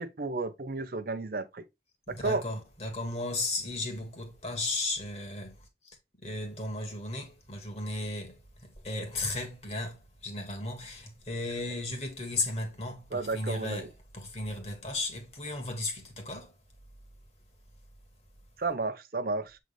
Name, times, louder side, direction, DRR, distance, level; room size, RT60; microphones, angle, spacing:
voice 1, 0.0-1.6 2.1-2.4 13.1-13.9 18.6-19.6, right 3 dB, 55° right, 0.7 m, -32 dB
voice 2, 2.1-5.6 5.8-6.0 6.2-16.5, left 2 dB, 35° left, 2.0 m, -35 dB
7.8 x 3.9 x 3.3 m
head